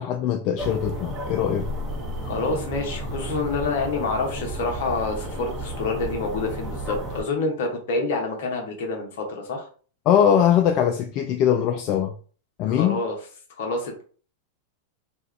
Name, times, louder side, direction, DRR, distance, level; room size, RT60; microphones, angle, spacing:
voice 1, 0.0-1.7 10.1-12.1 12.6-13.0, left 9 dB, 45° left, 0.3 m, -21 dB
sound 1, 0.6-7.2, right 1 dB, 25° right, 0.9 m, -32 dB
voice 2, 2.2-9.7 12.7-13.2 13.6-14.0, left 3 dB, 65° left, 1.0 m, -27 dB
2.7 x 2.3 x 3.3 m
hypercardioid pair, 100°, 0 cm